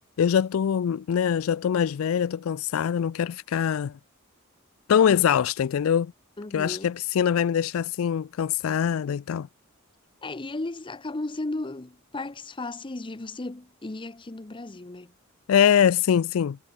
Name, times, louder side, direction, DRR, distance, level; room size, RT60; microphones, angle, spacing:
voice 1, 0.2-3.9 4.9-6.1 6.5-9.5 15.5-16.6, left 8 dB, 85° left, 0.4 m, -23 dB
voice 2, 6.4-6.9 10.2-15.1, left 2 dB, 25° left, 0.7 m, -35 dB
head